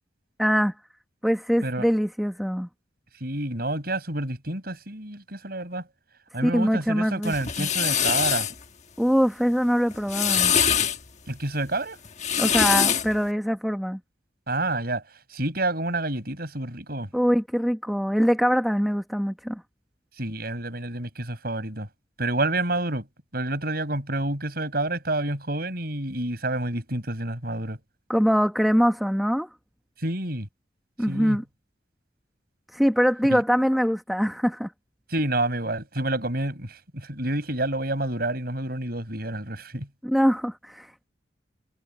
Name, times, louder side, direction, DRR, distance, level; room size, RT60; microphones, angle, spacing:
voice 1, 0.4-0.7 1.2-2.7 6.4-7.7 9.0-10.5 12.4-14.0 17.1-19.6 28.1-29.5 31.0-31.4 32.7-34.7 40.0-41.0, equal, ahead, 1.0 m, -23 dB
voice 2, 3.1-5.9 6.3-8.5 11.3-12.0 14.5-17.1 20.2-21.9 22.2-23.1 23.3-27.8 30.0-30.5 31.1-31.4 33.3-33.4 35.1-39.9, right 2 dB, 55° right, 7.1 m, -29 dB
sound 1, 7.2-8.5 9.9-11.0 12.0-13.1, left 8 dB, 40° left, 1.2 m, -23 dB
head